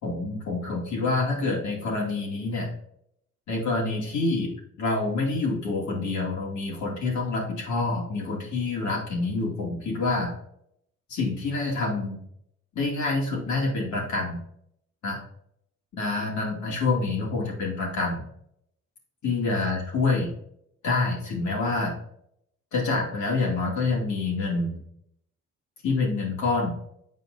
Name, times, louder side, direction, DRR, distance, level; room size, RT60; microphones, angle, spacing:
voice 1, 0.0-2.7 3.5-4.5 4.8-10.3 11.1-12.2 12.7-14.4 15.0-15.2 15.9-18.2 19.2-20.3 20.8-21.9 22.7-24.8 25.8-26.7, left 3 dB, 70° left, -2 dB, 2.3 m, -27 dB
7.5 x 5.1 x 2.6 m, 0.73 s
cardioid pair, 90°, 30 cm